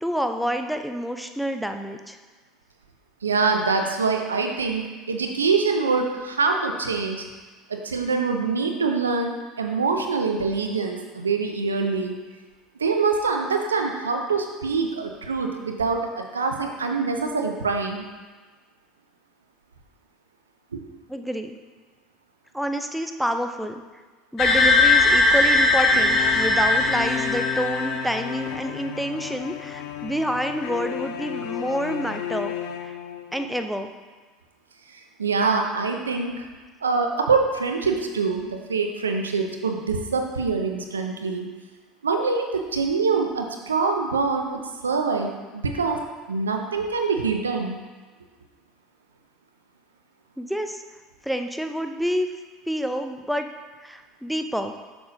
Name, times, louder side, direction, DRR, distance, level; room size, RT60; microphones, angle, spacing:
voice 1, 0.0-2.2 21.1-21.6 22.5-23.8 24.3-32.5 32.8-32.9 33.3-33.9 50.4-50.8 51.2-52.3 52.7-53.5 53.8-54.7, equal, ahead, 6 dB, 0.5 m, -28 dB
voice 2, 3.2-7.2 7.7-12.1 12.8-18.0 20.7-20.8 34.9-36.4 36.8-41.5 42.0-46.0 46.3-47.8, right 4 dB, 90° right, 4 dB, 0.6 m, -25 dB
sound 1, 24.4-28.2, left 2 dB, 50° left, 1.0 m, -19 dB
sound 2, 25.9-33.6, left 9 dB, 65° left, 0.5 m, -33 dB
7.0 x 6.7 x 2.7 m, 1.3 s
hypercardioid pair, 70°, 0 cm